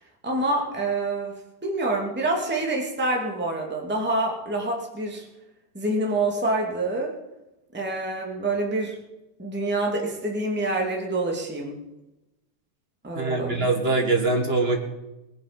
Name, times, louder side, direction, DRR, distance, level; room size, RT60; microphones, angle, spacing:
voice 1, 0.2-5.3 5.7-7.1 7.7-9.0 9.4-11.8 13.0-13.7, right 2 dB, 5° right, 0 dB, 2.1 m, -27 dB
voice 2, 13.1-14.8, right 2 dB, 35° right, 3 dB, 1.0 m, -23 dB
20.5 x 10.0 x 5.3 m, 0.97 s
omnidirectional pair, 3.9 m